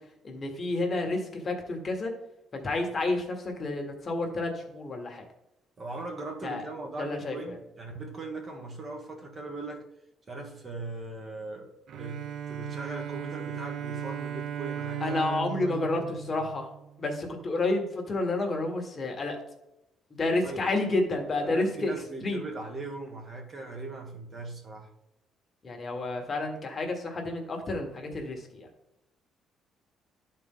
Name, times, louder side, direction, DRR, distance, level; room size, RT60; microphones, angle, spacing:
voice 1, 0.2-2.1 2.5-5.3 6.4-6.6 7.0-7.6 15.0-16.7 17.0-19.4 20.1-21.9 22.2-22.4 25.6-28.7, left 2 dB, 35° left, 1.6 m, -30 dB
voice 2, 5.8-9.8 10.3-15.2 15.6-16.5 20.4-20.7 21.4-24.9, right 3 dB, 35° right, 1.4 m, -39 dB
Bowed string instrument, 11.9-17.3, right 9 dB, 60° right, 0.4 m, -37 dB
11.0 x 4.4 x 3.8 m
cardioid pair, 120°, 0 cm